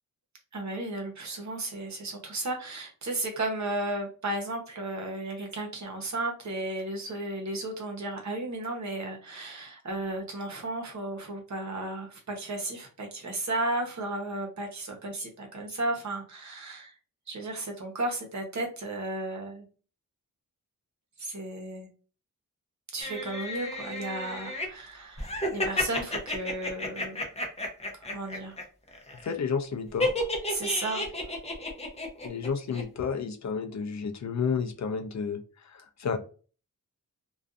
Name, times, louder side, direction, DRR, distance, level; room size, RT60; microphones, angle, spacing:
voice 1, 0.5-16.9 17.3-19.6 21.2-21.9 22.9-27.3 27.9-28.6 30.5-31.0, right 2 dB, 55° right, 2 dB, 0.8 m, -34 dB
sound 1, 23.0-24.7 25.2-28.6 28.9-29.3 30.0-32.5 32.7-32.8, left 1 dB, 20° left, 0.7 m, -32 dB
voice 2, 29.2-30.1 32.2-35.4 36.0-36.2, left 6 dB, 55° left, 6 dB, 0.4 m, -30 dB
2.5 x 2.3 x 2.4 m, 0.37 s
wide cardioid pair, 90°, 35 cm